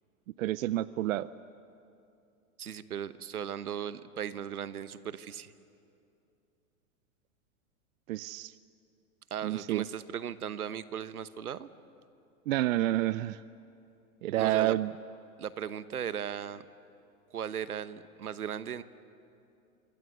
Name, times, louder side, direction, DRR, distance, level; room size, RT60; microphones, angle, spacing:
voice 1, 0.4-1.3 8.1-8.5 9.4-9.8 12.5-13.4 14.2-14.9, right 15 dB, 65° right, 17 dB, 0.7 m, -29 dB
voice 2, 2.6-5.5 9.3-11.7 14.4-14.8 15.4-16.6 17.3-18.8, right 8 dB, 90° right, 14 dB, 1.1 m, -37 dB
28.0 x 25.5 x 8.1 m, 2.6 s
hypercardioid pair, 110°, 44 cm